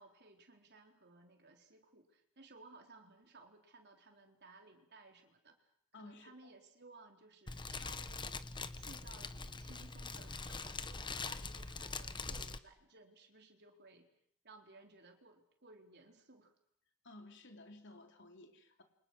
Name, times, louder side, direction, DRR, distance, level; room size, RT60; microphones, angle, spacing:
voice 1, 0.0-5.7 6.0-8.4 8.8-14.1 14.4-16.6, right 3 dB, 50° right, 3 dB, 4.2 m, -59 dB
voice 2, 5.9-6.3 17.0-18.8, left 2 dB, 55° left, 4 dB, 3.6 m, -55 dB
Fire, 7.5-12.6, left 4 dB, 20° left, 1.0 m, -43 dB
29.5 x 25.5 x 6.4 m, 0.68 s
head